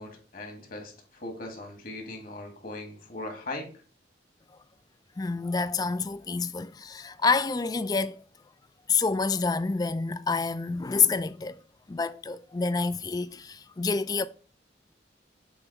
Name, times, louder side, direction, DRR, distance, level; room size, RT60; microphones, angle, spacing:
voice 1, 0.0-3.7, left 2 dB, 50° left, 1.6 m, -39 dB
voice 2, 5.2-8.2 8.9-11.6 11.9-14.3, left 4 dB, 20° left, 0.3 m, -28 dB
7.1 x 3.1 x 4.5 m
head